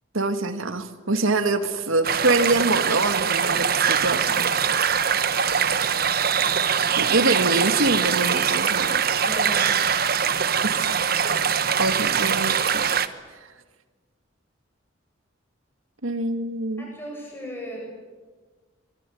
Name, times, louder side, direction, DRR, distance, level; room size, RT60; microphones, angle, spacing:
voice 1, 0.1-4.8 7.0-9.0 10.6-11.4 11.8-12.8 16.0-16.9, right 2 dB, 80° right, 8 dB, 2.2 m, -25 dB
sound 1, 2.0-13.1, right 7 dB, 45° right, 1.1 m, -22 dB
voice 2, 9.3-9.7 16.8-17.8, equal, 10° left, -1 dB, 7.9 m, -35 dB
25.0 x 23.5 x 9.5 m, 1.3 s
head